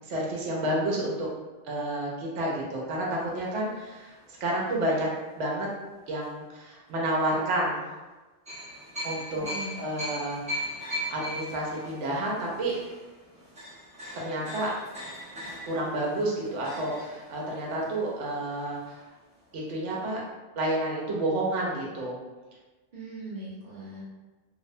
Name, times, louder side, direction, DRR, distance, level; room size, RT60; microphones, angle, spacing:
voice 1, 0.0-1.3 1.6-5.1 5.4-5.7 6.1-7.8 9.0-9.5 9.8-10.7 11.1-12.8 14.1-14.7 15.6-19.0 19.5-20.2 20.6-22.2, right 1 dB, 85° right, -3 dB, 0.9 m, -30 dB
Streets of Riga Latvia. Men at work, 3.0-5.5 6.1-6.2 8.5-19.2 19.5-19.6 19.9-20.0, equal, 10° right, 0.5 m, -40 dB
voice 2, 9.5-9.9 22.9-24.0, right 2 dB, 50° right, -6 dB, 0.8 m, -40 dB
2.6 x 2.0 x 2.6 m, 1.2 s
omnidirectional pair, 1.2 m